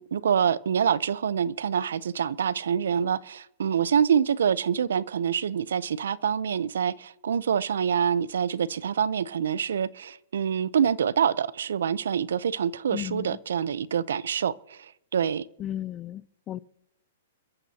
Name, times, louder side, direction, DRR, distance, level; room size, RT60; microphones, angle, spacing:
voice 1, 0.0-15.5, right 7 dB, 80° right, 0.7 m, -26 dB
voice 2, 12.9-13.4 15.6-16.6, left 12 dB, 25° left, 0.5 m, -35 dB
30.0 x 13.5 x 2.9 m
hypercardioid pair, 140°, 0 cm